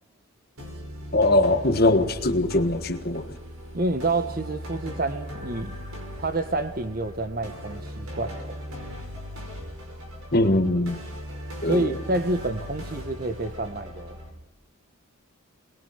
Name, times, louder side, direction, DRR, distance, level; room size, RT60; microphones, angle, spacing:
sound 1, 0.6-14.3, equal, 85° right, 5.3 m, -38 dB
voice 1, 1.1-3.4 10.3-11.0 11.6-11.9, left 1 dB, 45° left, 1.4 m, -21 dB
voice 2, 3.7-5.8 6.2-8.6 11.7-14.2, right 2 dB, 40° right, 1.1 m, -28 dB
22.0 x 21.0 x 5.7 m
head